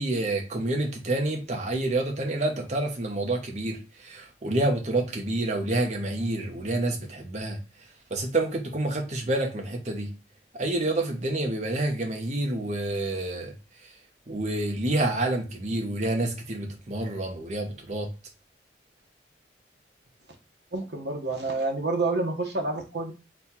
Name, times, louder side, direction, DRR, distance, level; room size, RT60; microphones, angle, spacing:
voice 1, 0.0-7.6 8.1-10.1 10.5-13.5 14.3-18.1, right 2 dB, 40° right, 0.8 m, -28 dB
voice 2, 20.7-23.1, right 3 dB, 70° right, 1.0 m, -28 dB
4.3 x 2.3 x 4.1 m
head